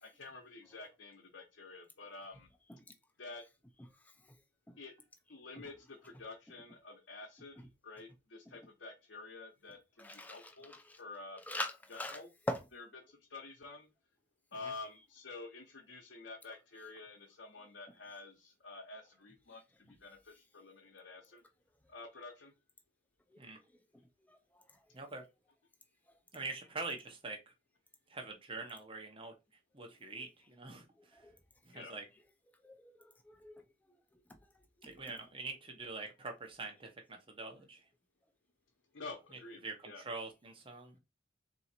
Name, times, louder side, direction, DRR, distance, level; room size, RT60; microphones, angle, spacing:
voice 1, 0.0-2.5 3.2-3.4 4.8-4.9 5.3-10.7 11.0-11.4 11.9-12.3 12.8-13.9 14.5-21.4 21.9-22.5 31.7-31.9 38.9-40.0, left 3 dB, 70° left, 0.9 m, -49 dB
voice 2, 3.8-4.4 4.7-4.8 5.6-6.2 6.5-6.8 7.5-7.7 8.4-8.7 9.7-11.0 11.3-12.7 15.0-15.1 16.8-16.9 17.9-18.2 19.5-19.6 19.8-20.0 23.3-23.6 23.9-24.8 26.4-26.5 30.1-30.5 31.0-31.4 32.2-32.3 32.6-34.9 39.3-39.4, left 1 dB, 10° left, 0.5 m, -46 dB
voice 3, 26.3-27.4 28.1-29.3 29.7-30.9 31.6-32.0 34.8-37.8 39.6-41.0, right 3 dB, 25° right, 0.9 m, -44 dB
3.8 x 2.7 x 4.3 m
head